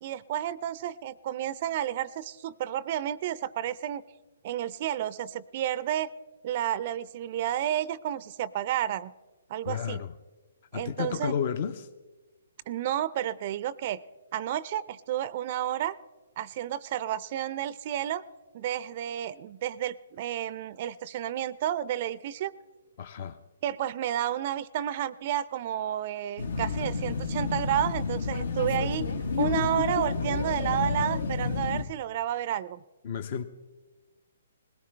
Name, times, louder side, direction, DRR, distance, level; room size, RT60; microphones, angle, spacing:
voice 1, 0.0-4.0 4.4-6.1 6.4-9.1 9.5-10.0 10.7-11.3 12.7-14.0 14.3-16.0 16.4-18.2 18.5-22.5 23.6-29.1 29.4-32.8, right 11 dB, 45° right, 19 dB, 0.4 m, -31 dB
voice 2, 9.7-10.1 10.7-11.9 23.0-23.4 33.0-33.4, left 7 dB, 50° left, 10 dB, 0.7 m, -32 dB
sound 1, 26.4-31.8, left 4 dB, 70° left, 1.1 m, -30 dB
19.5 x 17.5 x 3.3 m, 1.2 s
hypercardioid pair, 135°, 0 cm